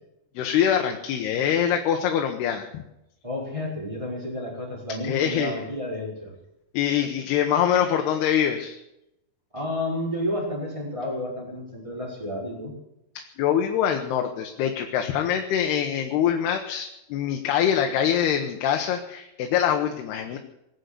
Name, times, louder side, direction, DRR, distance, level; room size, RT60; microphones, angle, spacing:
voice 1, 0.4-2.8 5.0-5.6 6.7-8.8 13.2-20.4, left 9 dB, 80° left, 4 dB, 3.1 m, -24 dB
voice 2, 3.2-6.3 9.5-12.7, left 1 dB, 5° right, -4 dB, 5.2 m, -31 dB
20.5 x 8.1 x 8.2 m, 0.85 s
omnidirectional pair, 4.7 m